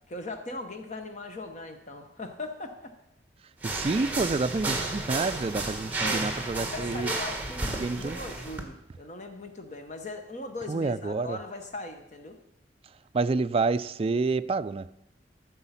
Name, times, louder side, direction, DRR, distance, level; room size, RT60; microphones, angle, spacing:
voice 1, 0.1-3.0 6.0-6.3 6.6-12.4, left 2 dB, 40° left, 0.9 m, -39 dB
sound 1, 3.6-8.6, right 2 dB, 10° right, 1.4 m, -32 dB
voice 2, 3.6-7.1 7.8-8.2 10.7-11.4 13.1-14.9, right 3 dB, 30° right, 0.3 m, -28 dB
14.0 x 7.0 x 5.7 m
head